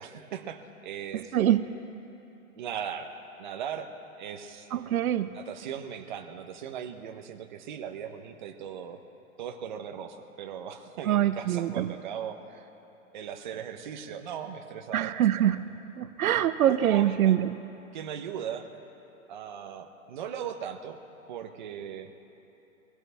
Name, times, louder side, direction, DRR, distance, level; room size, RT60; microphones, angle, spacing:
voice 1, 0.0-1.3 2.5-3.1 3.4-4.7 5.3-9.0 9.4-12.7 13.1-15.3 16.7-17.4 17.9-18.7 19.3-21.0 21.3-22.1, right 8 dB, 35° right, 5 dB, 0.8 m, -38 dB
voice 2, 1.3-1.7 4.7-5.3 11.1-11.9 14.9-15.6 16.0-17.5, right 11 dB, 85° right, 12 dB, 0.8 m, -24 dB
23.5 x 17.0 x 3.4 m, 2.9 s
hypercardioid pair, 175°, 41 cm